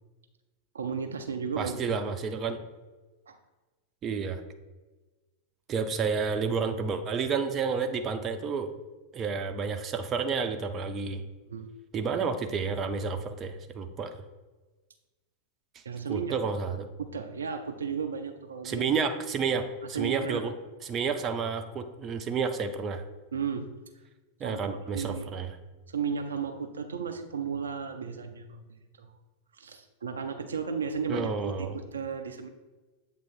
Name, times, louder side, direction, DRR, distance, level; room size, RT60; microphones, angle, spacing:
voice 1, 0.7-2.0 3.3-3.4 11.5-11.7 15.8-16.4 17.0-18.9 19.9-20.4 23.3-23.7 24.4-25.3 25.9-28.6 29.0-29.1 29.6-32.5, right 6 dB, 70° right, 7 dB, 0.5 m, -34 dB
voice 2, 1.6-2.6 4.0-4.4 5.7-8.7 9.1-11.2 11.9-14.1 16.1-16.9 18.6-20.5 20.8-23.0 24.4-25.5 31.1-31.7, right 5 dB, 30° right, 7 dB, 0.6 m, -30 dB
7.8 x 3.0 x 4.3 m, 1.2 s
figure-of-eight pair, 90°, 0 cm